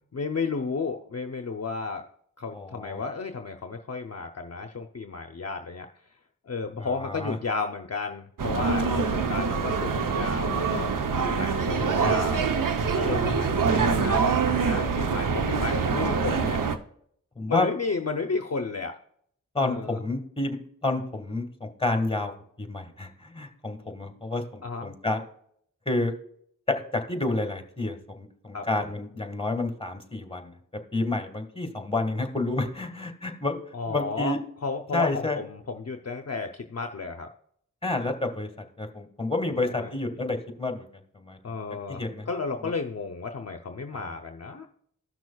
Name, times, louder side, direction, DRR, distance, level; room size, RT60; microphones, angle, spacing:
voice 1, 0.1-2.0 2.4-5.9 6.4-10.9 11.2-12.5 12.9-16.6 17.5-18.9 19.6-20.0 24.6-25.0 28.5-28.7 33.7-34.4 34.6-37.3 39.6-39.9 41.4-44.7, left 4 dB, 50° left, 5 dB, 0.7 m, -33 dB
voice 2, 2.5-3.0 6.8-7.4 11.7-12.1 13.2-13.3 17.3-17.7 19.5-22.3 22.6-25.2 25.8-26.1 26.7-30.5 30.9-34.4 34.9-35.4 37.8-41.6 41.9-42.3 43.9-44.2, left 2 dB, 15° left, 5 dB, 1.7 m, -30 dB
sound 1, 8.4-16.8, right 5 dB, 75° right, 0.8 m, -25 dB
14.5 x 6.1 x 2.3 m, 0.66 s
cardioid pair, 45°, 33 cm